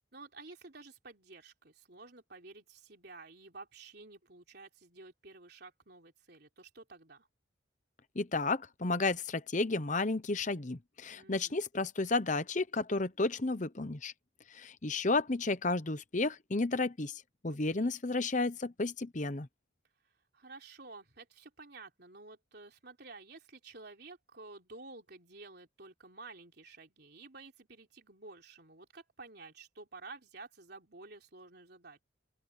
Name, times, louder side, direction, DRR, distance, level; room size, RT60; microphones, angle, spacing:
voice 1, 0.1-7.3 11.1-11.6 17.5-17.9 20.0-32.0, right 3 dB, 55° right, 3.7 m, -52 dB
voice 2, 8.1-14.1 14.5-17.1 17.4-19.5, left 3 dB, 40° left, 0.9 m, -32 dB
open air
head